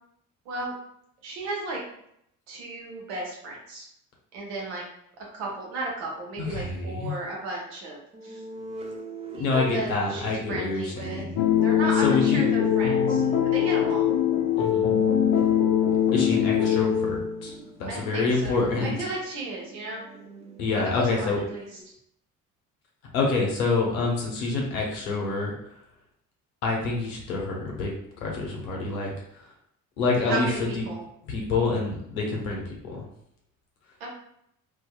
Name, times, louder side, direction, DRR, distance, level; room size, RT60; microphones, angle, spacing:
voice 1, 1.2-1.8 2.5-3.9 4.3-4.8 5.2-8.4 9.3-11.3 11.6-14.1 17.9-20.0 20.7-21.7 30.2-31.0 34.0-34.1, right 2 dB, 65° right, -2 dB, 0.9 m, -34 dB
voice 2, 6.4-7.2 9.3-11.4 12.0-12.5 14.6-15.0 16.1-17.5 17.8-19.0 20.6-21.4 23.1-25.5 26.6-27.9 28.2-29.1 30.0-30.5 30.7-30.9 31.3-33.1, left 3 dB, 75° left, -2 dB, 0.8 m, -27 dB
sound 1, 8.1-21.8, right 2 dB, 15° right, 0.4 m, -43 dB
sound 2, 11.4-17.5, left 9 dB, 45° left, 0.5 m, -22 dB
2.6 x 2.3 x 2.3 m, 0.73 s
figure-of-eight pair, 50°, 43 cm